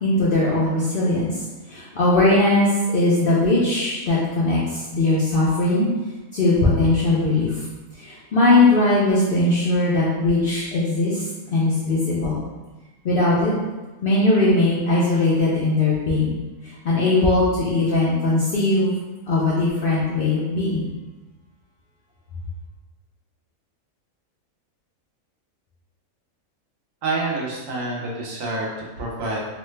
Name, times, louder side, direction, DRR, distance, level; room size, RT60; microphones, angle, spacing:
voice 1, 0.0-5.9 6.3-7.6 7.9-12.4 13.0-13.5 14.0-16.4 16.6-18.9 19.3-20.9, left 2 dB, 60° left, -7 dB, 0.6 m, -20 dB
voice 2, 27.0-28.7 29.0-29.4, right 2 dB, 70° right, -3 dB, 1.1 m, -27 dB
3.1 x 2.1 x 3.2 m, 1.2 s
omnidirectional pair, 1.5 m